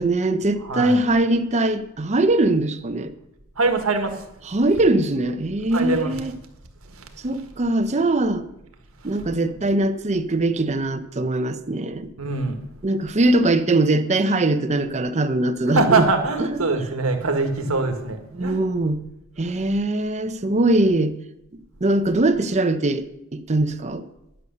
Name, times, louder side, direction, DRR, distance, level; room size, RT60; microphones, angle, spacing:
voice 1, 0.0-3.1 4.5-6.3 7.2-8.4 9.0-12.1 12.8-16.1 16.4-16.5 18.3-19.0 19.4-21.1 21.8-23.0 23.3-24.0, right 2 dB, 35° right, 0.7 m, -21 dB
voice 2, 0.6-1.0 3.6-4.1 5.7-6.3 12.2-12.8 15.7-18.6, right 3 dB, 80° right, 1.5 m, -23 dB
11.0 x 6.5 x 6.7 m
head